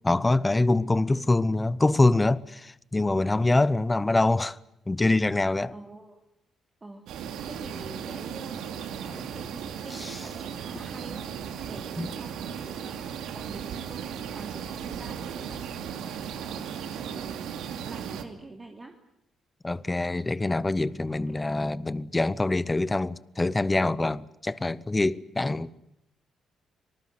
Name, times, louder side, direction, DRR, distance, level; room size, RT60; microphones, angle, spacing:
voice 1, 0.0-4.6 4.9-5.7 12.0-12.1 19.6-25.7, left 2 dB, 15° left, 0.9 m, -24 dB
voice 2, 5.7-6.2 6.8-11.2 11.6-19.0 21.1-21.6, right 2 dB, 25° right, 2.9 m, -46 dB
sound 1, 7.1-18.2, right 8 dB, 85° right, 2.6 m, -36 dB
25.5 x 19.5 x 9.7 m
cardioid pair, 90°, 0 cm